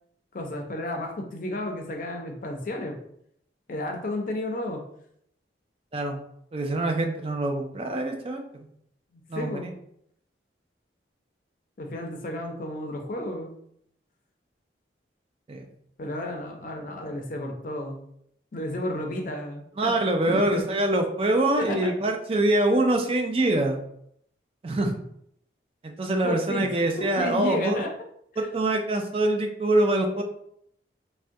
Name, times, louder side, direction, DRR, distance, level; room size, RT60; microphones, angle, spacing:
voice 1, 0.3-3.0 3.7-4.8 9.1-9.7 11.8-13.5 16.0-18.0 18.5-19.9 20.3-20.6 21.6-21.9 26.2-27.9 28.3-28.5, left 1 dB, 45° left, 3 dB, 0.5 m, -32 dB
voice 2, 6.5-8.4 9.3-9.7 15.5-15.7 19.8-23.8 24.6-24.9 25.8-27.8 28.4-30.2, right 1 dB, 30° right, 4 dB, 0.3 m, -24 dB
3.4 x 2.1 x 2.6 m, 0.71 s
head